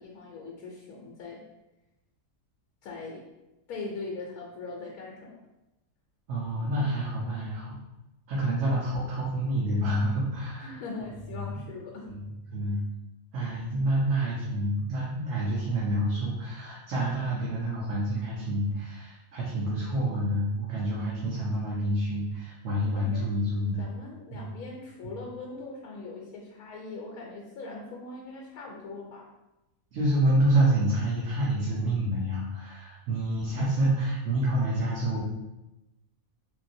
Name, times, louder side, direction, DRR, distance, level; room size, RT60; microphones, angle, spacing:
voice 1, 0.0-1.4 2.8-3.2 3.7-5.4 10.6-12.1 17.3-17.4 23.0-23.3 23.8-29.3, left 3 dB, 85° left, -2 dB, 1.1 m, -41 dB
voice 2, 6.3-7.8 8.3-10.7 11.3-11.4 12.1-12.2 12.5-12.8 13.3-23.8 24.3-24.5 25.0-25.2 29.9-35.2, right 1 dB, 65° right, -6 dB, 1.0 m, -28 dB
3.1 x 2.8 x 2.6 m, 0.96 s
omnidirectional pair, 1.5 m